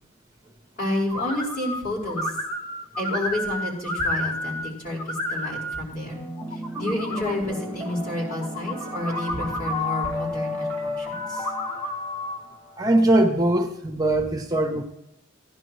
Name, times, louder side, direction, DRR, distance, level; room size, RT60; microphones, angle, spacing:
voice 1, 0.8-2.3 3.0-6.2 6.5-11.5, left 1 dB, 40° left, -5 dB, 5.1 m, -30 dB
sound 1, 1.1-1.8 2.1-4.7 5.0-5.8 6.4-7.4 8.3-10.1 11.2-12.4, left 1 dB, 90° left, 1.6 m, -30 dB
sound 2, 6.1-13.1, left 1 dB, 10° left, 1.6 m, -34 dB
voice 2, 12.8-14.8, right 1 dB, 15° right, 3 dB, 0.7 m, -21 dB
16.0 x 11.0 x 3.1 m, 0.86 s
head